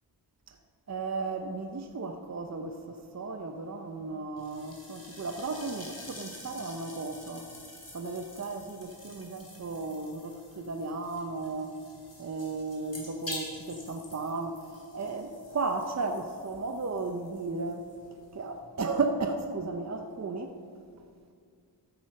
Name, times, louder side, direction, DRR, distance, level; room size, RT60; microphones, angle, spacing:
voice 1, 0.9-7.5 7.9-11.7 12.2-14.7 14.9-17.9 18.3-20.5, right 3 dB, 35° right, 0.8 m, -34 dB
sound 1, 4.4-18.6, left 1 dB, 35° left, 3.2 m, -48 dB
12.5 x 9.8 x 6.5 m
wide cardioid pair, 95°, 44 cm